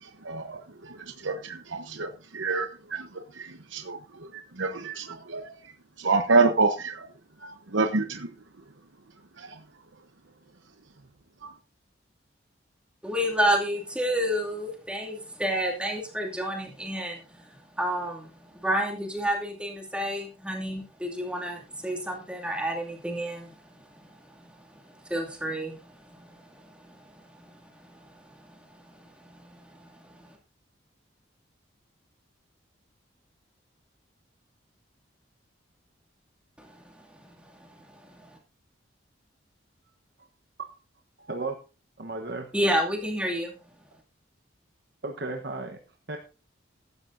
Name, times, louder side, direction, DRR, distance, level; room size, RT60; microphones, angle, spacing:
voice 1, 0.0-5.6 6.0-7.1 7.4-8.3 9.4-9.6, right 3 dB, 75° right, 1.0 m, -28 dB
voice 2, 13.0-30.4 36.6-38.4 42.5-43.5, equal, 5° right, 2.5 m, -31 dB
voice 3, 41.2-41.6 42.0-42.5 45.0-45.8 46.1-46.2, right 3 dB, 55° right, 1.1 m, -34 dB
15.0 x 12.5 x 2.7 m
head